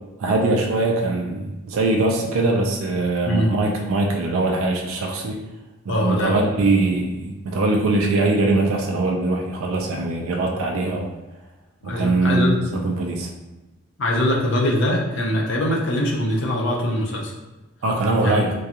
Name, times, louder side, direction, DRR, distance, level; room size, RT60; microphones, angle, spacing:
voice 1, 0.2-5.4 5.9-11.1 11.8-13.3 17.8-18.5, right 2 dB, 80° right, 1 dB, 0.4 m, -22 dB
voice 2, 5.9-6.4 11.8-12.6 14.0-17.3 18.2-18.3, left 1 dB, 55° left, -1 dB, 0.5 m, -22 dB
2.4 x 2.2 x 2.7 m, 1.1 s
head